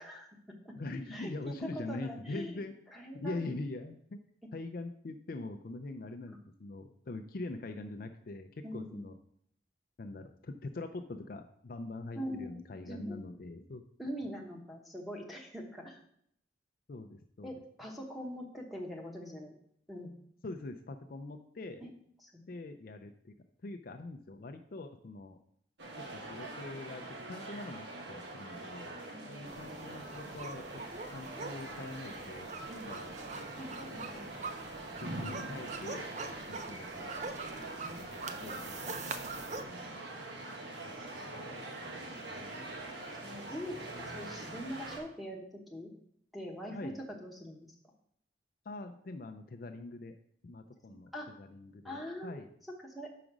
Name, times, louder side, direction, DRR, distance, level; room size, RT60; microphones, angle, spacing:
voice 1, 0.0-0.8 1.1-2.5 2.9-3.4 6.3-6.4 8.6-9.0 12.1-13.2 14.0-16.0 17.4-19.6 19.9-20.2 21.8-21.9 22.2-22.4 29.1-29.5 32.7-32.9 33.6-34.2 37.5-38.0 39.6-40.0 42.1-42.2 43.1-45.4 45.7-45.9 46.3-47.7 51.1-51.3 51.8-52.4 52.7-53.1, equal, ahead, 0 dB, 1.0 m, -43 dB
voice 2, 0.8-2.7 3.1-4.2 4.5-9.2 10.0-13.8 16.9-17.5 20.4-21.8 22.5-23.3 23.6-25.4 26.1-29.0 29.3-32.5 32.9-34.4 35.0-37.1 37.9-39.0 39.6-40.0 40.8-41.6 41.9-42.5 46.7-47.0 48.7-50.1 50.4-51.1 51.4-52.5, left 2 dB, 50° left, 6 dB, 0.4 m, -43 dB
sound 1, 25.8-45.0, right 2 dB, 65° right, 1.2 m, -44 dB
sound 2, 29.5-39.6, right 3 dB, 40° right, 0.5 m, -44 dB
5.1 x 4.9 x 6.0 m, 0.68 s
head